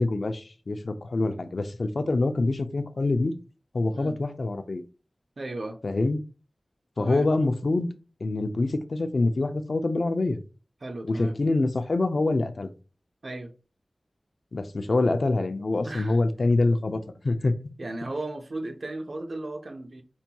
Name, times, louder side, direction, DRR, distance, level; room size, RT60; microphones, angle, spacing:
voice 1, 0.0-3.3 3.7-4.8 5.8-6.2 7.0-7.9 8.2-10.4 11.1-12.7 14.5-17.5, left 2 dB, 65° left, 0.5 m, -25 dB
voice 2, 5.4-5.8 7.0-7.3 10.8-11.3 13.2-13.5 15.8-16.2 17.8-20.0, right 2 dB, 65° right, 0.7 m, -35 dB
5.4 x 2.9 x 2.3 m
wide cardioid pair, 75°, 0 cm